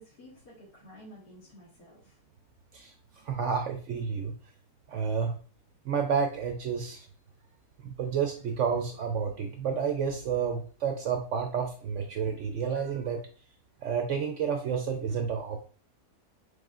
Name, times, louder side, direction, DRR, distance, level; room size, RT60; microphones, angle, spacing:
voice 1, 0.0-2.2, equal, 85° left, -8 dB, 2.4 m, -52 dB
voice 2, 3.2-4.3 4.9-5.4 5.8-7.1 7.8-13.2 13.8-15.6, right 6 dB, 65° right, 4 dB, 0.8 m, -30 dB
5.0 x 4.1 x 2.4 m, 0.40 s
omnidirectional pair, 1.7 m